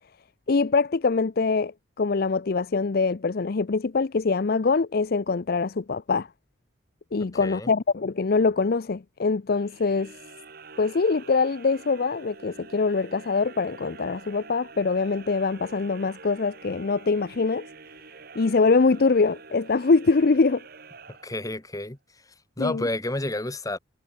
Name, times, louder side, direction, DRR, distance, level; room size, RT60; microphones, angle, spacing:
voice 1, 0.5-6.3 7.1-10.1 10.8-17.7 18.4-20.6 22.6-22.8, left 4 dB, 55° left, 0.6 m, -23 dB
voice 2, 7.4-7.7 21.1-23.8, left 1 dB, 20° left, 1.7 m, -31 dB
sound 1, 9.5-21.8, right 4 dB, 55° right, 2.4 m, -47 dB
head